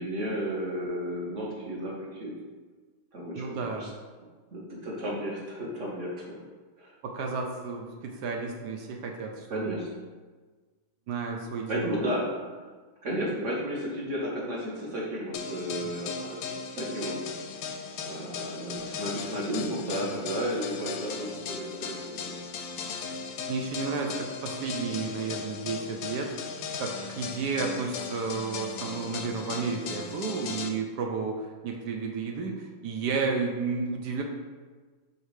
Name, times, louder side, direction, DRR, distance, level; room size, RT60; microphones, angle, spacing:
voice 1, 0.0-2.3 3.1-3.9 4.5-6.4 6.8-6.9 9.5-9.9 11.7-12.2 12.6-12.7 13.0-17.1 18.0-22.3, equal, 40° right, -4 dB, 1.4 m, -33 dB
voice 2, 3.3-4.0 7.0-9.9 11.1-11.9 23.5-34.2, right 4 dB, 70° right, 2 dB, 1.0 m, -32 dB
sound 1, 15.3-30.7, left 5 dB, 75° left, 1.2 m, -37 dB
5.3 x 3.9 x 4.9 m, 1.4 s
omnidirectional pair, 2.3 m